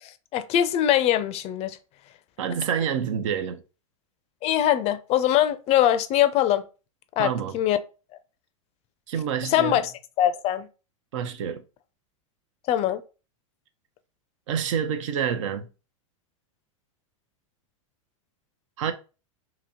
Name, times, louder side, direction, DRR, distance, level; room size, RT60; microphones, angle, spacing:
voice 1, 0.0-1.8 4.4-6.6 7.2-7.8 9.4-9.9 10.2-10.7 12.7-13.0, left 11 dB, 40° left, 0.4 m, -22 dB
voice 2, 2.4-3.6 7.2-7.6 9.1-9.8 11.1-11.6 14.5-15.7 18.8-18.9, right 8 dB, 65° right, 0.7 m, -27 dB
2.9 x 2.9 x 3.6 m
hypercardioid pair, 105°, 17 cm